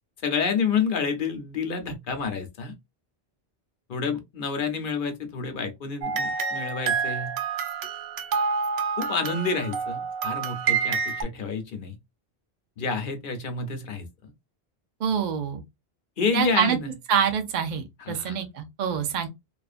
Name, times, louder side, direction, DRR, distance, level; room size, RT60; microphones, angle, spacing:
voice 1, 0.2-2.7 3.9-7.3 9.0-12.0 12.8-14.3 16.2-16.9 18.1-18.4, left 5 dB, 60° left, 0.8 m, -29 dB
sound 1, 6.0-11.2, right 5 dB, 85° right, 0.9 m, -28 dB
voice 2, 15.0-15.6 16.3-16.8 17.1-19.3, right 7 dB, 55° right, 0.6 m, -25 dB
2.4 x 2.4 x 2.4 m
omnidirectional pair, 1.1 m